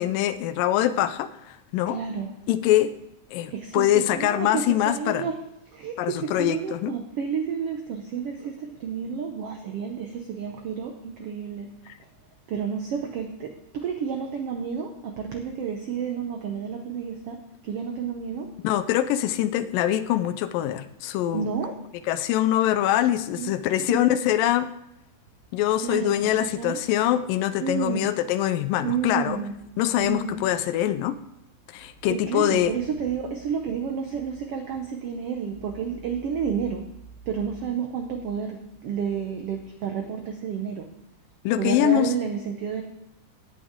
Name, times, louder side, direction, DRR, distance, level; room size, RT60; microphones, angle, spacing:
voice 1, 0.0-2.0 2.5-2.9 3.3-5.3 6.0-7.0 18.6-21.5 22.1-24.7 25.5-29.4 29.8-31.2 31.7-32.7 41.4-42.1, left 12 dB, 85° left, 12 dB, 2.3 m, -24 dB
voice 2, 1.9-2.3 3.5-5.4 5.7-11.7 12.5-18.5 21.3-21.7 23.4-23.5 23.8-24.0 25.8-26.8 27.6-28.1 28.8-29.5 30.0-30.4 32.1-36.8 37.3-40.9 41.6-42.8, right 7 dB, 80° right, 4 dB, 1.3 m, -30 dB
17.0 x 8.6 x 3.6 m, 0.83 s
omnidirectional pair, 3.9 m